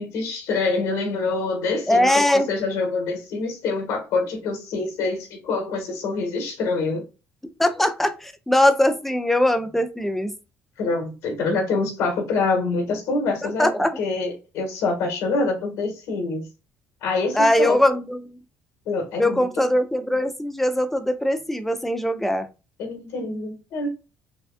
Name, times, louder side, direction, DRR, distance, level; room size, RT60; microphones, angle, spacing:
voice 1, 0.0-7.1 10.8-13.7 14.0-16.5 17.0-17.8 18.9-19.5 22.8-23.9, left 3 dB, 85° left, 1.8 m, -25 dB
voice 2, 1.9-2.5 7.6-10.3 13.4-14.0 17.3-18.3 19.2-22.5, left 1 dB, 5° left, 0.4 m, -21 dB
6.1 x 2.4 x 2.4 m
cardioid pair, 165°, 5 cm